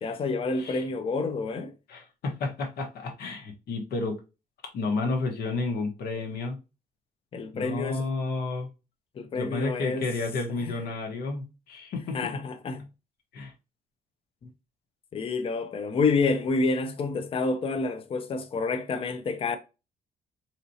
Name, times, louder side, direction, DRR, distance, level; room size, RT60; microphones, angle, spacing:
voice 1, 0.0-1.7 7.3-8.1 9.2-10.1 12.1-12.9 14.4-14.5 15.1-19.6, left 3 dB, 35° left, 0.5 m, -28 dB
voice 2, 1.9-4.2 4.7-6.6 7.5-8.7 9.3-12.2 13.3-13.5, left 3 dB, 75° left, 1.2 m, -31 dB
4.1 x 3.0 x 2.7 m
cardioid pair, 160°, 16 cm